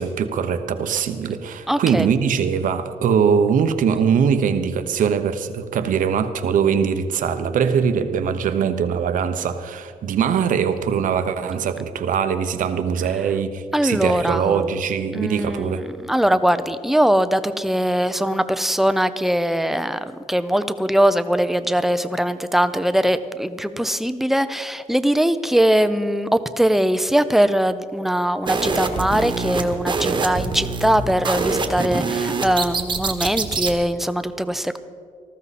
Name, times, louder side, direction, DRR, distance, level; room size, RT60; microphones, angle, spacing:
voice 1, 0.0-15.9, right 7 dB, 80° right, 9 dB, 1.0 m, -22 dB
voice 2, 1.7-2.1 13.7-14.7 15.1-34.8, equal, ahead, 11 dB, 0.6 m, -21 dB
sound 1, 28.5-33.8, right 4 dB, 35° right, 1.2 m, -25 dB
19.0 x 14.0 x 4.2 m, 2.1 s
wide cardioid pair, 145°, 14 cm